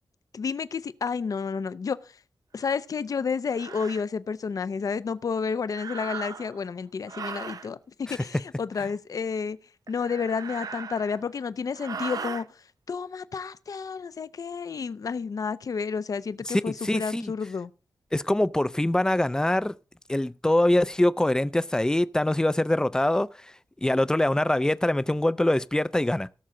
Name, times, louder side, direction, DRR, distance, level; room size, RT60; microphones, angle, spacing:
voice 1, 0.3-2.0 2.5-9.6 9.9-12.4 12.9-17.7, left 5 dB, 55° left, 0.6 m, -30 dB
sound 1, 2.6-2.8 3.5-4.0 5.7-6.6 7.1-7.7 9.9-11.3 11.8-12.5, right 6 dB, 60° right, 0.5 m, -38 dB
voice 2, 16.5-17.3 18.1-19.7 20.1-23.5 23.8-26.3, left 1 dB, 10° left, 0.4 m, -24 dB
18.0 x 6.3 x 3.7 m
wide cardioid pair, 105°, 7 cm